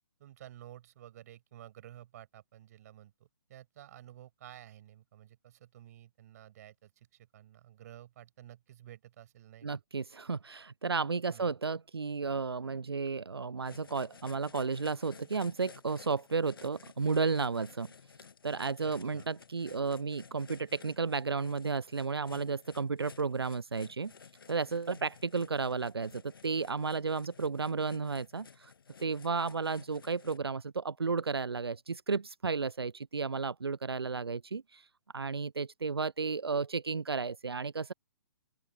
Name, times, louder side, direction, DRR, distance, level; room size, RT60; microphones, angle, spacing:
voice 1, 0.2-9.8 11.3-11.5 18.8-19.3, right 12 dB, 40° right, 6.8 m, -53 dB
voice 2, 9.6-17.9 18.4-24.1 24.5-28.7 29.0-34.9 35.1-37.9, right 4 dB, 85° right, 0.4 m, -33 dB
sound 1, 13.6-30.4, left 6 dB, 65° left, 1.4 m, -55 dB
open air
figure-of-eight pair, 130°, 13 cm